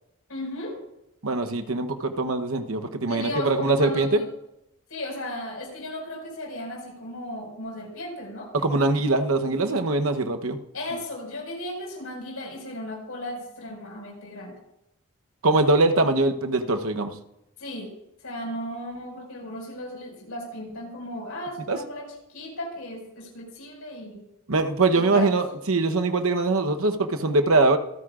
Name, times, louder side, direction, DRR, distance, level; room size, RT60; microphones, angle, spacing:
voice 1, 0.3-0.8 3.1-4.3 4.9-8.5 10.7-14.6 17.6-17.9 18.2-24.3 24.9-25.4, left 1 dB, 85° left, 0 dB, 5.6 m, -35 dB
voice 2, 1.2-4.2 8.5-10.6 15.4-17.1 21.7-21.8 24.5-27.8, right 2 dB, 80° right, 6 dB, 1.0 m, -22 dB
26.5 x 9.5 x 2.5 m, 0.86 s
head